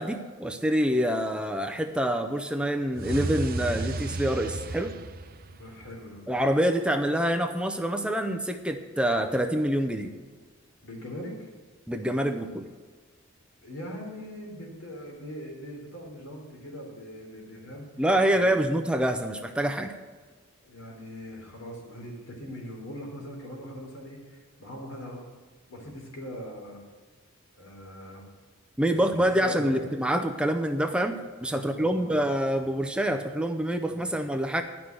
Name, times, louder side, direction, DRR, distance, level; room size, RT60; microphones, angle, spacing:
voice 1, 0.0-5.0 6.3-10.1 11.9-12.7 18.0-19.9 28.8-34.6, right 1 dB, 5° right, 5 dB, 0.5 m, -26 dB
sound 1, 2.9-6.1, right 2 dB, 45° right, 0.6 m, -33 dB
voice 2, 5.5-6.2 10.8-11.5 13.6-17.9 18.3-18.8 20.6-25.2 25.7-26.8 27.6-28.3 29.4-29.9 31.5-32.1 33.9-34.1, equal, 70° left, -1 dB, 3.7 m, -41 dB
11.0 x 6.1 x 9.0 m, 1.5 s
head